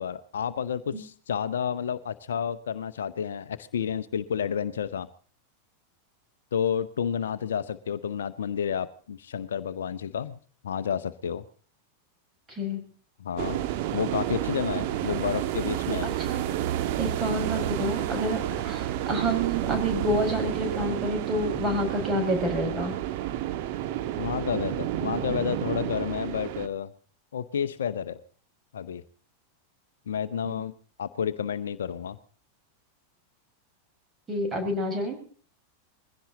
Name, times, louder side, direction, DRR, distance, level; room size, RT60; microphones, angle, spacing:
voice 1, 0.0-5.1 6.5-10.4 10.6-11.4 13.2-16.1 24.2-26.9 27.3-28.2 28.7-29.0 30.1-30.7 31.0-32.2, left 8 dB, 65° left, 13 dB, 0.8 m, -30 dB
voice 2, 12.5-12.8 16.0-16.6 17.0-22.9 30.5-30.6 34.3-35.2, equal, 20° right, 4 dB, 5.6 m, -29 dB
sound 1, 13.4-26.7, right 12 dB, 45° right, 1.4 m, -30 dB
21.5 x 16.0 x 4.1 m, 0.44 s
figure-of-eight pair, 90°, 0 cm